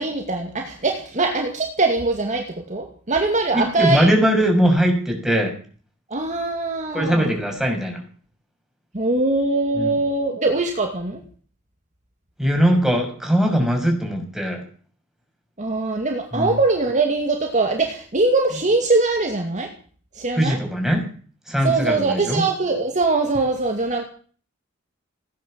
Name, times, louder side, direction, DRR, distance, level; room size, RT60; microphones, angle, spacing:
voice 1, 0.0-4.1 6.1-7.3 8.9-11.2 15.6-19.7 20.2-20.6 21.6-24.0, right 3 dB, 35° right, 3 dB, 2.4 m, -22 dB
voice 2, 3.5-5.5 6.9-8.0 9.8-9.9 12.4-14.6 16.3-16.6 20.4-21.0 21.5-22.4, equal, ahead, 1 dB, 6.6 m, -20 dB
17.5 x 10.5 x 7.5 m, 0.43 s
head